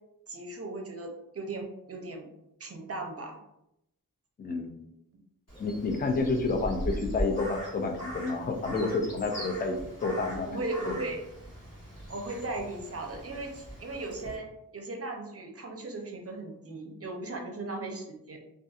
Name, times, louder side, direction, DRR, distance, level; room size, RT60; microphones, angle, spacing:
voice 1, 0.3-2.3 2.6-3.4 5.1-5.2 10.5-11.2 12.1-14.5 14.7-18.4, right 2 dB, 45° right, 3 dB, 0.5 m, -37 dB
voice 2, 4.4-4.8 5.6-9.8 10.0-11.0, left 3 dB, 30° left, 3 dB, 0.4 m, -30 dB
Crow, 5.5-14.4, right 1 dB, 45° left, 1.3 m, -40 dB
2.7 x 2.4 x 2.3 m, 0.84 s
wide cardioid pair, 65°, 34 cm